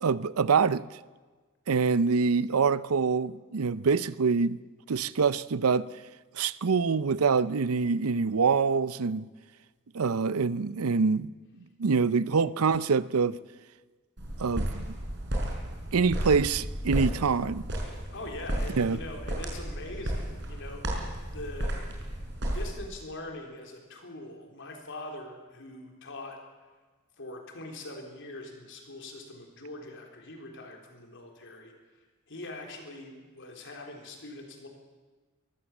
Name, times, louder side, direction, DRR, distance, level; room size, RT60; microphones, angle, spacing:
voice 1, 0.0-0.8 1.7-4.6 4.9-5.9 6.4-9.3 9.9-11.3 11.8-13.4 14.4-14.8 15.9-17.7 18.8-19.0, right 5 dB, 85° right, 0.6 m, -25 dB
sound 1, 14.2-22.8, right 1 dB, 55° right, 5.2 m, -33 dB
voice 2, 18.1-20.8 21.3-21.8 22.5-26.4 27.2-34.7, left 2 dB, 60° left, 3.9 m, -43 dB
22.5 x 15.5 x 7.3 m
head